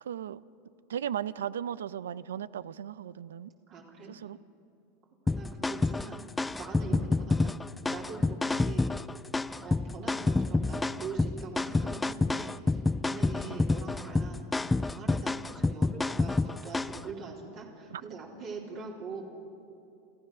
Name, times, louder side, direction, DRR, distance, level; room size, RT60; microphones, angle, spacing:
voice 1, 0.0-0.4 0.9-3.5 4.1-4.4 6.9-7.1 13.5-13.6 17.9-18.0, right 9 dB, 90° right, 0.5 m, -36 dB
voice 2, 3.7-4.1 5.3-6.2 6.6-7.5 7.9-8.9 9.6-19.3, right 4 dB, 50° right, 3.6 m, -43 dB
sound 1, 5.3-17.1, left 3 dB, 10° left, 0.4 m, -28 dB
28.5 x 14.5 x 6.4 m
hypercardioid pair, 105°, 0 cm